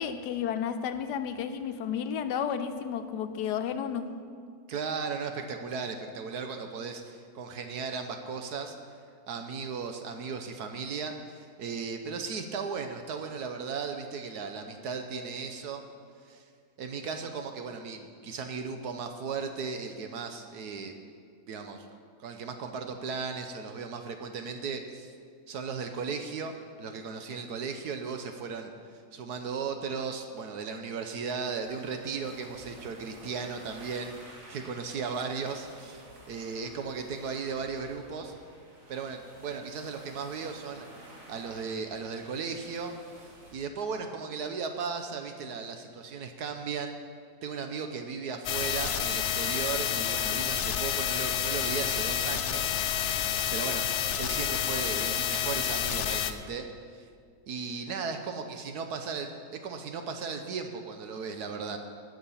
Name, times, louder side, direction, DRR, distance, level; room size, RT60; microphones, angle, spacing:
voice 1, 0.0-4.1, left 8 dB, 85° left, 10 dB, 1.3 m, -32 dB
voice 2, 4.7-8.8 9.3-15.8 16.3-16.4 16.8-20.9 21.5-21.8 22.2-25.1 25.5-28.7 29.1-34.1 34.5-38.3 38.9-40.9 41.3-42.9 43.5-47.0 47.4-53.0 53.5-53.9 54.2-56.7 56.9-57.1 57.5-59.3 59.6-61.8, right 5 dB, 75° right, 6 dB, 1.3 m, -36 dB
sound 1, 31.2-43.5, right 1 dB, 55° right, 2.2 m, -52 dB
sound 2, 48.5-56.3, left 9 dB, 60° left, 0.7 m, -29 dB
18.0 x 6.7 x 5.6 m, 2.2 s
omnidirectional pair, 1.7 m